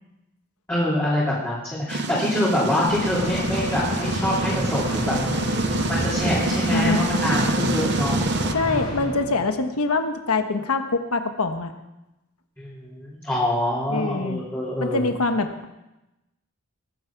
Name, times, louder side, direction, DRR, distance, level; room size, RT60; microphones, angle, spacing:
voice 1, 0.7-5.2 5.9-8.2 12.6-15.1, left 1 dB, 10° left, -8 dB, 2.9 m, -25 dB
sound 1, 1.9-8.5, right 3 dB, 50° right, 0.7 m, -26 dB
sound 2, 2.9-9.7, left 1 dB, 55° left, 5.5 m, -30 dB
voice 2, 6.7-7.1 8.5-11.7 13.9-14.4 14.8-15.7, left 3 dB, 90° left, 7 dB, 1.2 m, -24 dB
19.5 x 9.7 x 4.7 m, 0.97 s
head